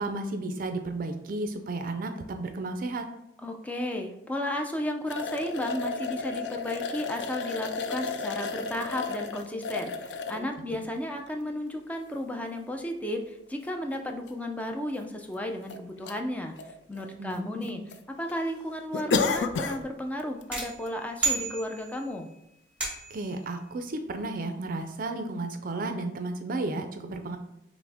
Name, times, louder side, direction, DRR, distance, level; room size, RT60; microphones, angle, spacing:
voice 1, 0.0-3.1 10.3-10.8 17.2-17.9 23.1-27.4, right 2 dB, 50° right, 7 dB, 0.4 m, -33 dB
voice 2, 3.4-16.6 16.9-22.3, left 1 dB, 10° left, 3 dB, 0.4 m, -34 dB
sound 1, 5.1-10.4 11.1-11.2 12.8-12.9 13.2-13.3 14.3-14.4 14.6-14.7 15.3-15.8 16.1-16.2 16.6-17.3 17.6-18.0 18.3-18.4 18.9-19.8 20.2-20.4 20.9-21.0, left 4 dB, 80° left, 0.4 m, -32 dB
sound 2, 20.5-22.1 22.8-23.3, right 4 dB, 10° right, 1.4 m, -32 dB
5.9 x 2.0 x 3.5 m, 0.84 s
head